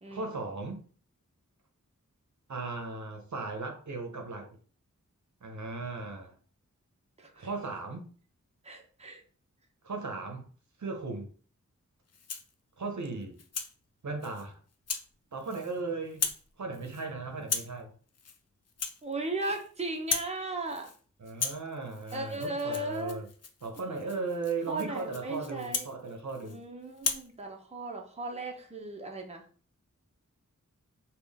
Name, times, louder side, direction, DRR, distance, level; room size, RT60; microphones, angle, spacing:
voice 1, 0.1-0.8 2.5-4.6 5.4-6.3 7.4-8.1 9.8-10.5 10.8-11.3 12.8-13.3 14.0-14.6 15.3-16.3 16.6-17.9 21.2-23.2 23.6-26.6, right 3 dB, 65° right, 4 dB, 0.7 m, -37 dB
voice 2, 7.2-7.5 8.6-9.2 19.0-20.9 22.1-23.3 23.9-24.1 24.7-25.9 26.4-29.4, right 2 dB, 20° right, 1 dB, 0.7 m, -37 dB
Rattle (instrument), 12.1-12.5 13.0-13.7 14.2-14.4 14.9-15.1 15.4-15.8 16.1-16.5 16.7-17.1 17.4-17.8 18.1-18.4 18.7-19.7 19.9-20.4 20.7-21.0 21.3-26.6 26.9-27.3, left 5 dB, 55° left, 0.5 m, -37 dB
3.6 x 2.3 x 3.4 m, 0.42 s
wide cardioid pair, 55°, 31 cm